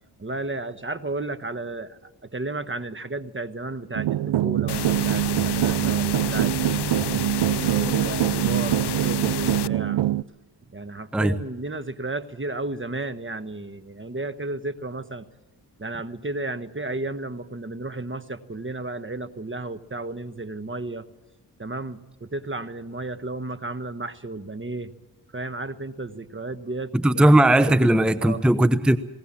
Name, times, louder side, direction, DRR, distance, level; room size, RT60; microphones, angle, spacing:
voice 1, 0.2-7.2 7.8-10.0 10.7-15.2 15.8-21.1 21.6-24.9 25.3-27.9 28.2-28.5, right 2 dB, 25° right, 1.2 m, -33 dB
sound 1, 3.9-10.2, right 13 dB, 75° right, 0.6 m, -24 dB
sound 2, 4.7-9.7, left 12 dB, 65° left, 0.6 m, -31 dB
voice 2, 26.9-29.0, right 1 dB, ahead, 0.9 m, -18 dB
20.0 x 19.0 x 7.4 m
cardioid pair, 40°, 44 cm